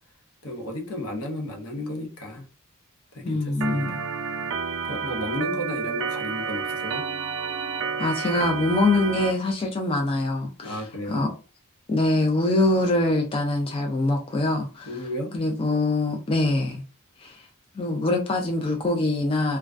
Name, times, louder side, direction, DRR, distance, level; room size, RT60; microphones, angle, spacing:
voice 1, 0.4-2.5 3.1-4.0 4.8-7.0 10.6-11.3 14.8-15.3, left 1 dB, 70° left, 0.7 m, -33 dB
voice 2, 3.2-3.9 8.0-11.3 11.9-14.9 15.3-16.8 17.2-17.5 17.8-19.6, left 2 dB, 25° left, 0.3 m, -24 dB
Organ, 3.6-9.3, right 5 dB, 60° right, 0.4 m, -30 dB
2.3 x 2.2 x 2.4 m
head